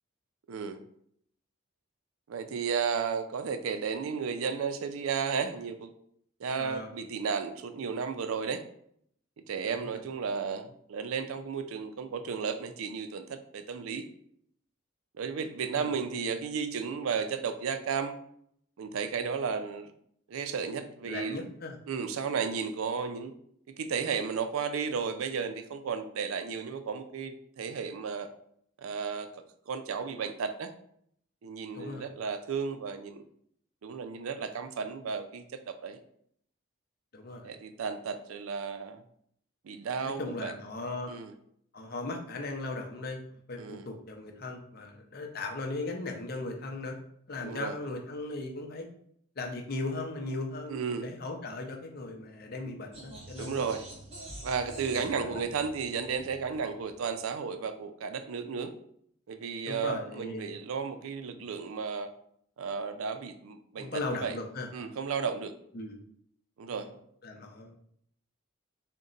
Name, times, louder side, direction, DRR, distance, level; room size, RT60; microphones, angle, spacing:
voice 1, 0.5-0.8 2.3-5.9 6.4-8.6 9.5-14.1 15.2-18.2 18.8-19.9 20.3-21.4 21.9-23.3 23.8-28.3 28.8-29.3 29.7-30.7 31.4-33.2 33.8-36.0 37.4-39.0 39.6-40.5 41.1-41.3 43.6-43.8 47.4-47.8 50.7-51.1 53.4-53.9 54.4-58.7 59.3-62.1 62.6-64.4 64.7-65.5 66.6-66.9, right 6 dB, 85° right, 9 dB, 0.4 m, -33 dB
voice 2, 6.6-6.9 9.7-10.0 15.6-15.9 21.0-21.8 31.7-32.1 37.1-37.5 40.0-41.1 41.7-43.2 43.5-47.0 47.3-48.9 49.4-53.6 54.9-55.4 59.7-60.5 61.3-61.5 63.8-64.7 65.7-66.0 67.2-67.7, left 2 dB, 45° left, 3 dB, 0.5 m, -38 dB
sound 1, 52.9-57.1, right 1 dB, 30° right, 0.8 m, -47 dB
4.0 x 2.2 x 3.8 m, 0.68 s
head